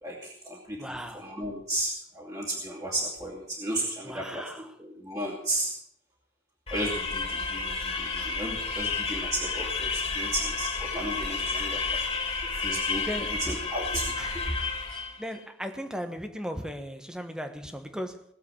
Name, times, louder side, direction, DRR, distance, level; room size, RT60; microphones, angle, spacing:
voice 1, 0.0-5.7 6.7-12.1 12.6-14.6, right 1 dB, 20° right, 2.9 m, -34 dB
voice 2, 0.8-1.3 4.0-4.7 13.1-13.4 14.2-14.4 15.2-18.2, equal, 5° right, 1.2 m, -37 dB
sound 1, 6.7-15.2, left 4 dB, 30° left, 2.1 m, -31 dB
18.5 x 8.0 x 8.4 m
head